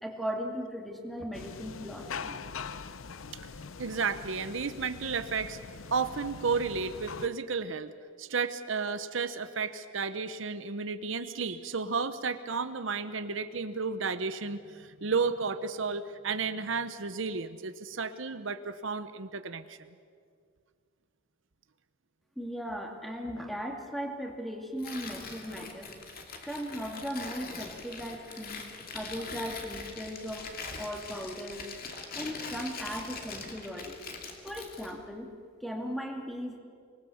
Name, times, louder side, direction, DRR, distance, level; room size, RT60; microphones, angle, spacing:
voice 1, 0.0-2.4 22.4-25.9 26.5-30.4 30.8-31.7 32.1-34.0 34.4-35.3 35.6-36.6, equal, ahead, 2 dB, 2.4 m, -37 dB
sound 1, 1.3-7.3, left 5 dB, 80° left, 0.7 m, -43 dB
voice 2, 3.8-5.6 5.9-7.9 8.2-19.8, right 5 dB, 70° right, 11 dB, 0.9 m, -32 dB
Tearing, 24.8-35.0, left 4 dB, 45° left, 2.4 m, -42 dB
25.5 x 19.5 x 7.1 m, 2.1 s
head